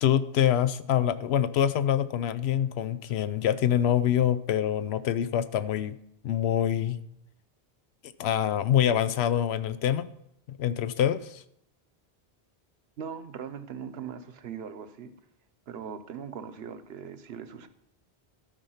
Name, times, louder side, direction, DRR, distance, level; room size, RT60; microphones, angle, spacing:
voice 1, 0.0-6.0 6.2-7.0 8.2-10.1 10.5-11.4, left 10 dB, 80° left, 14 dB, 0.9 m, -25 dB
voice 2, 13.0-15.1 15.7-17.7, right 7 dB, 75° right, 11 dB, 1.0 m, -40 dB
12.5 x 5.3 x 5.6 m, 0.78 s
omnidirectional pair, 1.1 m